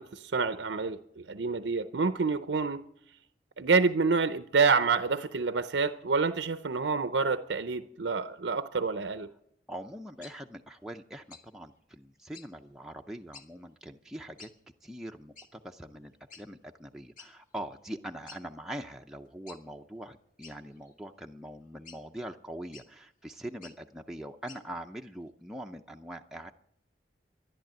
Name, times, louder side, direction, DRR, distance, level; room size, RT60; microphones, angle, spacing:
voice 1, 0.0-2.8 3.6-9.3, right 4 dB, 80° right, 11 dB, 0.6 m, -28 dB
voice 2, 9.7-14.5 14.8-26.5, right 1 dB, 5° right, 2 dB, 0.5 m, -43 dB
sound 1, 10.2-10.4 11.3-11.5 12.3-12.5 13.3-13.5 14.4-14.5 15.4-15.5 16.3-16.5 17.2-17.3 17.7-17.8 18.3-18.4 19.5-19.6 20.4-20.9 21.8-22.0 22.7-22.9 23.5-23.8 24.5-24.6, left 5 dB, 50° left, 1.7 m, -50 dB
13.5 x 11.0 x 9.0 m, 0.75 s
head